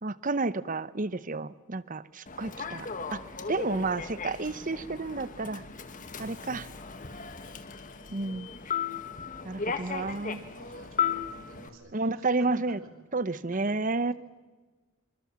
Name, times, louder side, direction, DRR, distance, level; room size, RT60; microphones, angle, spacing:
voice 1, 0.0-3.2 3.5-5.6 6.2-6.7 8.1-8.5 9.4-10.4 11.9-12.8 13.1-14.1, right 3 dB, 35° right, 16 dB, 0.8 m, -31 dB
Human voice / Subway metro underground, 2.3-11.7, left 6 dB, 35° left, 1.8 m, -36 dB
voice 2, 9.6-12.9 13.3-13.8, right 2 dB, 65° right, 5 dB, 5.5 m, -52 dB
26.5 x 25.0 x 7.4 m, 1.3 s
head